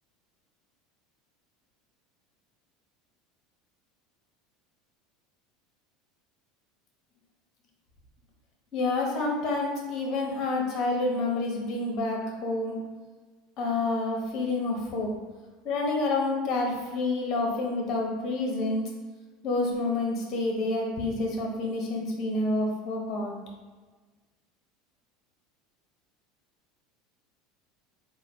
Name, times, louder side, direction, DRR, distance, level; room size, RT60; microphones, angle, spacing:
voice 1, 8.7-12.7 13.6-15.1 15.6-18.8 19.4-23.3, left 2 dB, 45° left, 0 dB, 1.1 m, -28 dB
4.0 x 2.3 x 4.2 m, 1.3 s
supercardioid pair, 120°, 0 cm